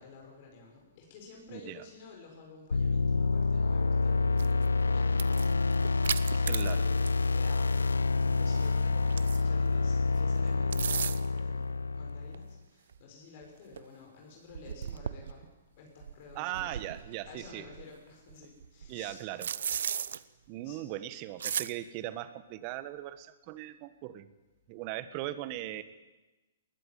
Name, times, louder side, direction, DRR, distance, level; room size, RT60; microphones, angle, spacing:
voice 1, 0.0-11.7 11.9-15.5 15.8-16.7 17.2-19.2 19.5-20.1 20.6-20.8, left 4 dB, 50° left, 1 dB, 6.5 m, -52 dB
voice 2, 1.5-1.8 6.5-6.8 16.3-17.6 18.9-19.5 20.5-24.3 24.7-25.8, right 14 dB, 40° right, 13 dB, 1.7 m, -39 dB
sound 1, 2.7-12.5, left 3 dB, 90° left, 0.6 m, -28 dB
sound 2, 4.4-4.7 5.1-7.3 7.6-7.7 8.5-9.6 10.5-11.4 12.3-12.4 12.9-13.0 13.4-13.5 13.7-13.8 14.5-15.5 16.0-17.9 18.3-20.2 21.4-21.7, right 8 dB, 70° right, 0.9 m, -36 dB
20.5 x 18.5 x 9.3 m, 1.1 s
hypercardioid pair, 125°, 0 cm